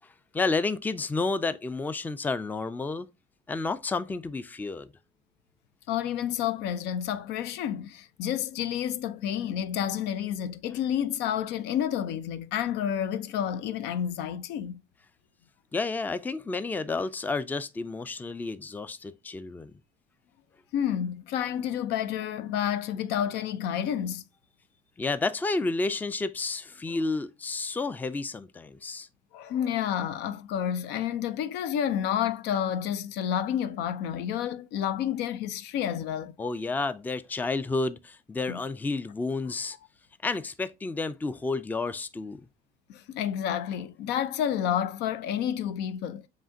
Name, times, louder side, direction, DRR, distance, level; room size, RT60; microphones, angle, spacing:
voice 1, 0.3-3.1 3.5-4.9 15.7-19.7 25.0-29.1 36.4-39.8 40.2-42.4, left 3 dB, 10° left, 0.3 m, -31 dB
voice 2, 5.9-14.8 20.7-24.2 29.3-36.3 38.5-38.6 42.9-46.3, left 9 dB, 85° left, 0.5 m, -30 dB
7.2 x 2.9 x 2.6 m
cardioid pair, 110°, 17 cm